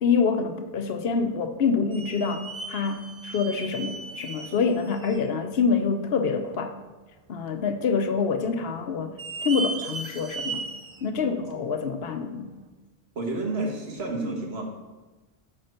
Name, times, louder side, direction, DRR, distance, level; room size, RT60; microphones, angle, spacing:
voice 1, 0.0-2.4 2.7-6.7 7.3-9.1 9.4-10.7 11.0-12.5, left 5 dB, 70° left, 7 dB, 0.9 m, -26 dB
sound 1, 1.1-1.2 1.9-5.3 5.8-5.9 6.5-6.6 7.5-7.9 8.2-8.3 9.0-11.0 11.5-11.6 12.5-12.6, right 3 dB, 35° right, 0.5 m, -36 dB
voice 2, 11.1-11.5 13.1-14.6, right 2 dB, 75° right, 1 dB, 1.7 m, -30 dB
8.7 x 4.4 x 6.5 m, 1.2 s
omnidirectional pair, 1.1 m